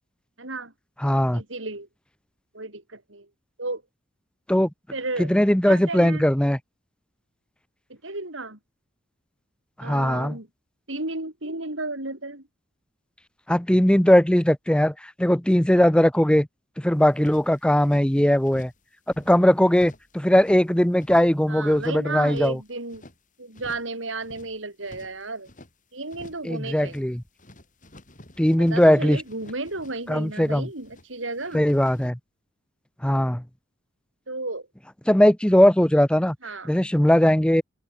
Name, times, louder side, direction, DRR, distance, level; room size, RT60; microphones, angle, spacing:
voice 1, 0.4-0.7 1.3-1.9 2.5-3.3 3.6-3.8 4.9-5.3 5.7-6.3 7.9-8.6 9.8-10.5 10.9-12.4 21.5-23.1 23.4-25.5 25.9-27.0 28.7-31.7 34.3-34.7 36.4-36.7, right 2 dB, 80° right, 6.1 m, -33 dB
voice 2, 1.0-1.4 4.5-4.7 5.2-6.6 9.8-10.4 13.5-16.5 16.8-18.7 19.2-22.6 26.4-27.2 28.4-29.2 30.1-30.7 31.5-32.2 33.0-33.4 35.1-36.4 36.6-37.6, equal, 5° left, 0.7 m, -19 dB
sound 1, 16.9-18.1 18.4-18.8 19.1-20.6 21.0-21.4 21.6-23.2 23.5-23.9 24.2-25.7 26.1-26.5 26.7-27.1 27.4-31.1 31.3-32.1, left 1 dB, 40° left, 8.0 m, -49 dB
head